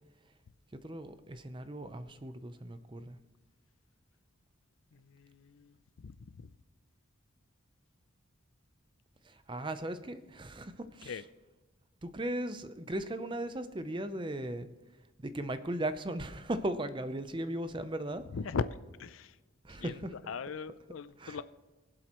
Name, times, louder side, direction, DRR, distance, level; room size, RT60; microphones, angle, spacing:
voice 1, 0.7-3.2 9.2-11.1 12.0-14.7 15.2-18.3 19.6-20.1 21.2-21.4, right 1 dB, 25° right, 0.6 m, -37 dB
voice 2, 4.9-6.5 11.0-11.2 18.3-18.6 19.0-19.4 19.7-21.4, left 5 dB, 80° left, 0.5 m, -39 dB
23.0 x 7.7 x 3.1 m
head